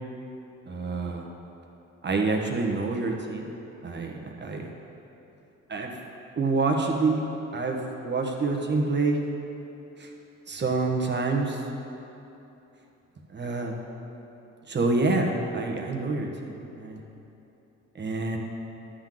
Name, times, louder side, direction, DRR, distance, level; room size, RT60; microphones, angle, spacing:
voice 1, 0.7-1.3 2.0-3.5 3.8-4.7 5.7-6.0 6.4-7.2 7.5-9.2 10.0-10.1 10.5-11.6 13.3-13.7 14.7-17.0 18.0-18.4, right 3 dB, 35° right, 1 dB, 1.2 m, -27 dB
11.0 x 3.9 x 7.6 m, 3.0 s
cardioid pair, 90°, 30 cm